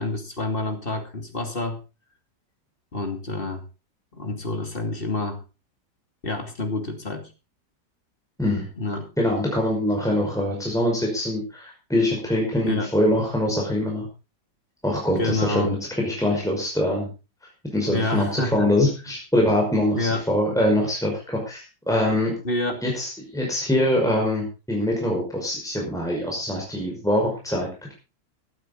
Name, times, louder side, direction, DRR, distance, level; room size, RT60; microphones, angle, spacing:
voice 1, 0.0-1.8 2.9-3.6 4.1-5.4 6.2-7.3 8.8-9.1 12.6-12.9 15.2-15.7 17.9-18.7 19.9-20.2 22.4-22.8, left 2 dB, 30° left, 5 dB, 2.9 m, -28 dB
voice 2, 9.2-14.1 14.8-17.1 17.7-22.3 22.8-27.9, left 1 dB, ahead, -1 dB, 5.4 m, -23 dB
16.5 x 12.5 x 3.9 m, 0.30 s
omnidirectional pair, 1.9 m